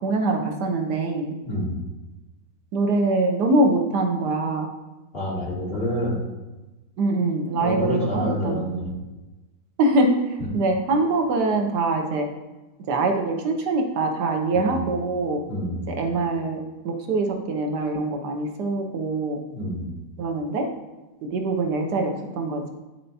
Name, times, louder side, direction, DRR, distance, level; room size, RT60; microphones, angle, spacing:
voice 1, 0.0-1.4 2.7-4.7 7.0-8.6 9.8-10.1 10.5-12.3 12.9-15.4 15.9-19.4 20.2-20.7 21.3-22.7, right 2 dB, 80° right, 3 dB, 1.4 m, -23 dB
voice 2, 1.4-1.8 5.1-6.2 7.6-9.0 14.5-14.9 15.5-15.9 19.5-19.9, equal, 35° left, -7 dB, 2.4 m, -27 dB
10.0 x 4.3 x 2.7 m, 1.1 s
omnidirectional pair, 1.7 m